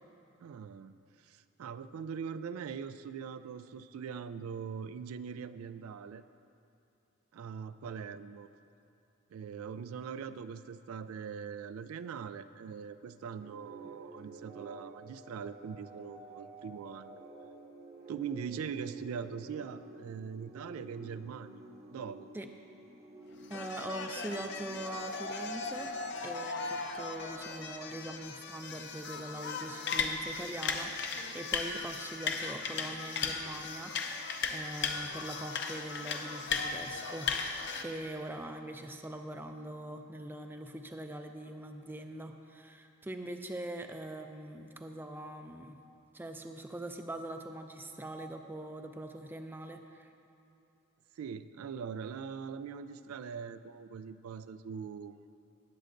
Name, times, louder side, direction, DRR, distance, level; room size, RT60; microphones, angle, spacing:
voice 1, 0.4-0.9 1.2-6.2 7.3-8.5 9.3-17.2 18.1-21.6 21.9-22.3 51.2-55.2, right 6 dB, 85° right, 12 dB, 0.3 m, -42 dB
sound 1, 13.4-27.1, right 2 dB, 30° right, 0.8 m, -51 dB
sound 2, 23.4-37.8, left 5 dB, 55° left, 0.6 m, -37 dB
voice 2, 23.5-45.8 46.1-50.1, right 1 dB, 10° right, 6 dB, 0.4 m, -43 dB
18.0 x 7.7 x 2.6 m, 2.8 s
head